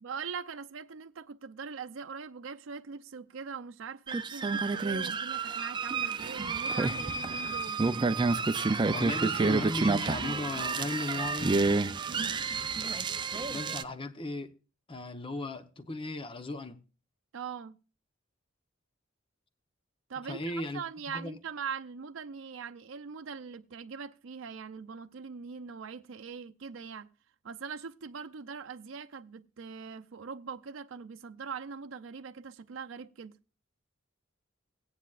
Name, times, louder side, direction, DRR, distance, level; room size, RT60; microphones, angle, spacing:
voice 1, 0.0-7.8 12.1-12.4 17.3-17.8 20.1-27.1 27.4-33.4, right 6 dB, 80° right, 0.5 m, -42 dB
sound 1, 4.1-13.8, right 4 dB, 25° right, 0.4 m, -29 dB
voice 2, 8.9-11.5 12.2-12.3 13.5-14.5 14.9-16.8 20.3-20.8 21.1-21.4, left 2 dB, 25° left, 0.9 m, -36 dB
17.5 x 9.6 x 2.4 m
head